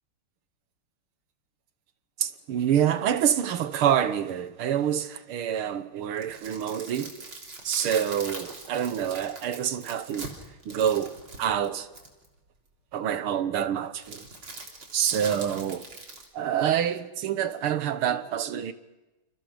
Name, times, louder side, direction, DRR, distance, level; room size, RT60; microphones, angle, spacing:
voice 1, 2.2-7.3 7.6-10.3 10.7-11.9 12.9-14.3 14.9-15.9 16.3-18.7, right 9 dB, 90° right, 2.0 m, -27 dB
sound 1, 6.0-12.3 14.0-16.3, right 3 dB, 75° right, 4.5 m, -42 dB
29.5 x 28.5 x 5.1 m
omnidirectional pair, 2.3 m